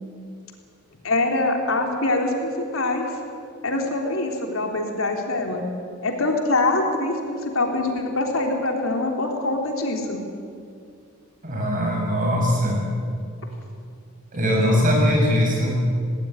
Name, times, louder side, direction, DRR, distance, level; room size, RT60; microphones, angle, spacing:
voice 1, 1.0-3.1 3.6-5.7 6.0-10.2, left 2 dB, 80° left, 2 dB, 3.5 m, -24 dB
voice 2, 11.4-12.8 14.3-15.9, equal, 40° right, -1 dB, 7.5 m, -20 dB
19.0 x 18.5 x 9.7 m, 2.4 s
head